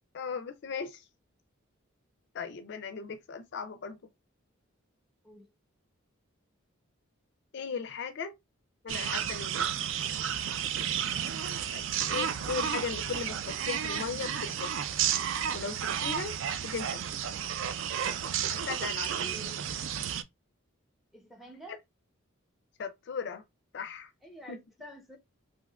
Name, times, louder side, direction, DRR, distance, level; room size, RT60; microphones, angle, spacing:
voice 1, 0.1-1.0 2.3-4.0 7.5-8.4 8.8-9.7 11.7-14.7 15.5-17.0 18.5-19.5 22.8-23.4 23.7-24.1 24.5-24.6, left 5 dB, 55° left, 0.4 m, -37 dB
sound 1, 8.9-20.2, right 9 dB, 65° right, 0.3 m, -32 dB
voice 2, 19.1-19.7 21.1-21.8 24.2-25.2, equal, ahead, 0.6 m, -49 dB
3.5 x 2.7 x 2.2 m
head